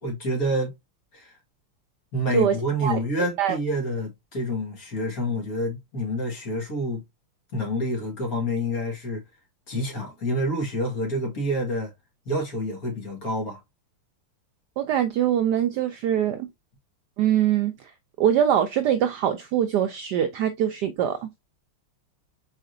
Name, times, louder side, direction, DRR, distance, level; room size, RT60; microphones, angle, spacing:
voice 1, 0.0-0.8 1.1-1.3 2.1-7.0 7.5-9.2 9.7-11.9 12.3-13.6, equal, 45° left, 2.0 m, -28 dB
voice 2, 14.8-16.5 17.2-17.7 18.2-21.5, right 10 dB, 90° right, 0.9 m, -23 dB
4.8 x 4.2 x 2.6 m
omnidirectional pair, 2.4 m